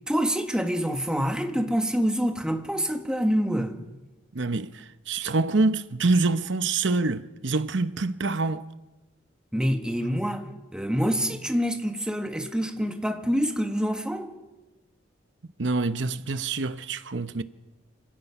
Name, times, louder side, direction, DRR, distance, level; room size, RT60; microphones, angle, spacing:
voice 1, 0.1-3.8 9.5-14.3, equal, 5° right, 1.6 m, -26 dB
voice 2, 4.3-8.6 15.6-17.4, right 3 dB, 70° right, 0.9 m, -26 dB
26.5 x 17.0 x 5.9 m
head